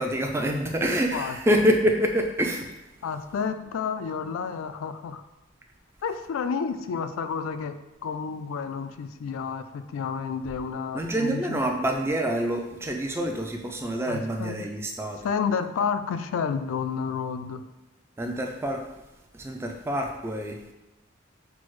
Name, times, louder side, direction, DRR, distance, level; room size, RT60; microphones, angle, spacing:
voice 1, 0.0-2.7 10.9-15.2 18.2-18.8 19.3-20.6, equal, 10° right, 3 dB, 0.3 m, -26 dB
voice 2, 3.0-5.2 6.0-11.6 14.1-14.7 15.2-17.6, left 6 dB, 80° left, 9 dB, 0.3 m, -30 dB
6.0 x 2.0 x 3.1 m, 1.0 s
head